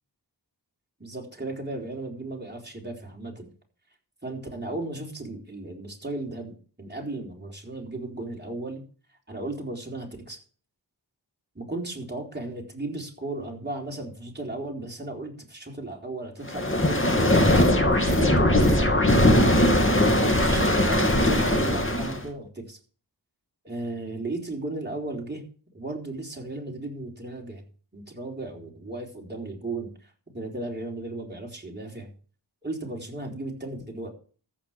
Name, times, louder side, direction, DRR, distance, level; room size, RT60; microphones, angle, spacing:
voice 1, 1.0-3.5 4.2-8.8 9.3-10.4 11.5-17.4 17.9-19.6 20.4-22.8 23.6-25.4 25.7-27.6 27.9-32.1 32.6-34.1, right 2 dB, 25° right, 0 dB, 4.2 m, -35 dB
sound 1, 16.5-22.2, left 1 dB, 30° left, 2.5 m, -20 dB
14.5 x 5.7 x 7.5 m, 0.41 s
wide cardioid pair, 60°, 41 cm